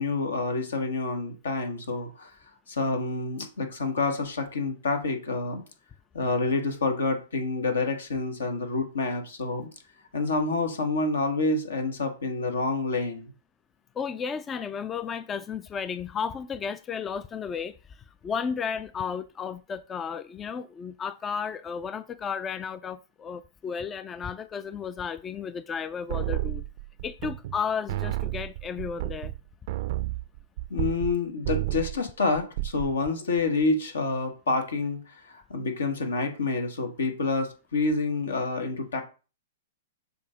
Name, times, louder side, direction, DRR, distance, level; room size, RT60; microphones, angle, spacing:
voice 1, 0.0-2.3 2.7-5.6 6.1-9.7 10.1-13.3 30.7-39.0, left 3 dB, 85° left, 1.5 m, -28 dB
voice 2, 14.0-18.0 18.2-26.6 27.0-29.3, left 6 dB, 20° left, 0.3 m, -33 dB
sound 1, 26.1-27.6 27.9-31.2 31.4-32.0 32.4-32.9, right 16 dB, 55° right, 0.4 m, -31 dB
6.9 x 2.7 x 5.0 m
hypercardioid pair, 130°, 0 cm